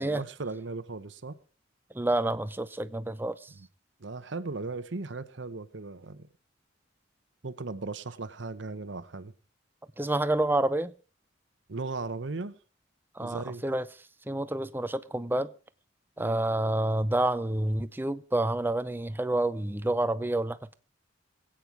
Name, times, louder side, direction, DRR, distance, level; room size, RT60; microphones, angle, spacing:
voice 1, 0.0-1.4 3.5-3.7 4.0-6.3 7.4-9.3 11.7-12.6 13.2-13.6 16.2-16.4, right 3 dB, 65° right, 0.9 m, -37 dB
voice 2, 1.9-3.5 10.0-10.9 13.1-13.9 14.3-15.5 16.2-20.7, right 1 dB, 10° right, 0.6 m, -28 dB
22.0 x 8.9 x 4.7 m
head